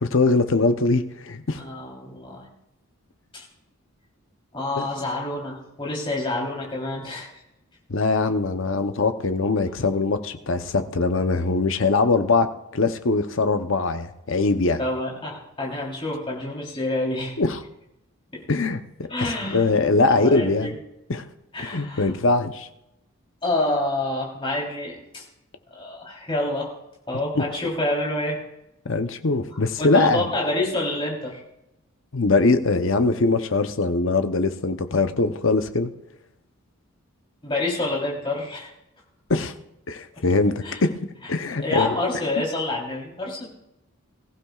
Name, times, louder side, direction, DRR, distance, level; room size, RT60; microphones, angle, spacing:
voice 1, 0.0-1.6 4.8-4.9 7.9-14.8 17.4-17.6 18.5-20.7 21.1-21.2 21.6-22.7 27.3-27.4 28.8-30.2 32.1-35.9 39.3-39.5 39.9-40.5 40.8-41.0 41.3-41.9, left 3 dB, 60° left, 8 dB, 0.8 m, -22 dB
voice 2, 1.6-2.5 3.3-3.4 4.5-7.3 14.8-17.4 18.3-18.4 19.1-20.7 21.5-22.1 23.4-25.2 25.7-26.7 27.1-28.4 29.5-31.4 37.4-38.7 40.2-40.3 40.6-40.8 41.6-43.5, left 2 dB, 25° left, -3 dB, 3.5 m, -28 dB
21.5 x 15.0 x 2.4 m, 0.88 s
head